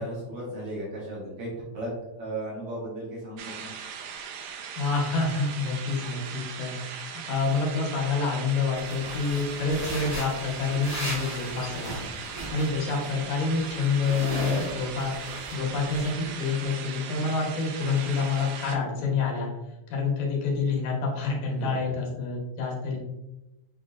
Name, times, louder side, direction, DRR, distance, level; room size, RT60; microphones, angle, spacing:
voice 1, 0.0-1.9 2.2-3.7 21.4-21.9, right 1 dB, 70° right, -5 dB, 1.6 m, -36 dB
sound 1, 3.4-18.8, right 7 dB, 85° right, 1.4 m, -39 dB
voice 2, 4.8-6.7 7.1-12.0 12.5-19.5 19.9-23.0, left 4 dB, 85° left, -1 dB, 2.5 m, -28 dB
sound 2, 8.7-13.1 13.4-15.6 15.9-16.1, right 1 dB, 50° right, 0.4 m, -37 dB
6.7 x 2.6 x 2.4 m, 0.98 s
omnidirectional pair, 3.5 m